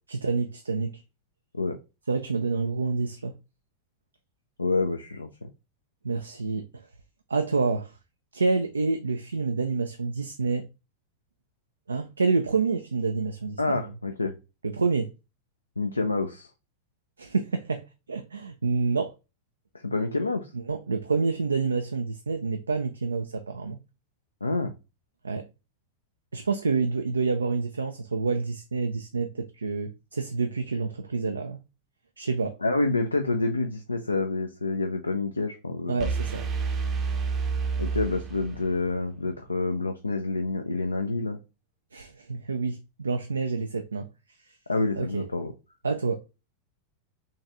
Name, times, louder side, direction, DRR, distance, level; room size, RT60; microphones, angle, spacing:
voice 1, 0.1-1.0 2.1-3.3 6.0-6.7 7.3-7.9 8.3-10.6 11.9-13.6 14.6-15.1 17.2-19.1 20.5-23.8 25.2-25.4 26.3-31.6 32.2-32.6 35.9-36.4 41.9-44.1 45.0-45.3 45.8-46.2, right 4 dB, 75° right, 0.4 m, -28 dB
voice 2, 4.6-5.3 13.6-14.3 15.8-16.5 19.7-20.5 24.4-24.7 32.6-36.1 37.8-41.4 44.7-45.5, left 3 dB, 80° left, 0.4 m, -28 dB
sound 1, 36.0-38.9, right 5 dB, 30° right, 0.7 m, -29 dB
4.0 x 3.4 x 2.5 m
figure-of-eight pair, 90°, 0 cm